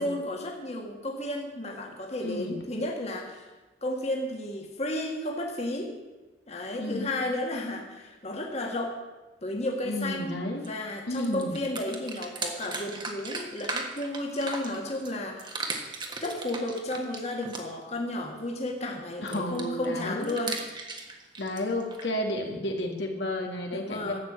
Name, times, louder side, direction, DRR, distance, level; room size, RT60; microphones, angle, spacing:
voice 1, 0.0-3.5 3.8-5.9 6.5-9.0 9.4-15.6 16.2-20.6 23.7-24.2, left 1 dB, 35° left, 1 dB, 1.8 m, -33 dB
voice 2, 2.2-2.5 6.8-7.1 9.8-10.7 11.1-11.6 19.2-20.4 21.4-24.2, left 1 dB, 75° left, 2 dB, 2.0 m, -32 dB
sound 1, 10.6-10.7 11.0-15.1 15.4-17.9 19.3-22.1, right 3 dB, 25° right, 1.5 m, -37 dB
12.5 x 8.2 x 8.1 m, 1.2 s
head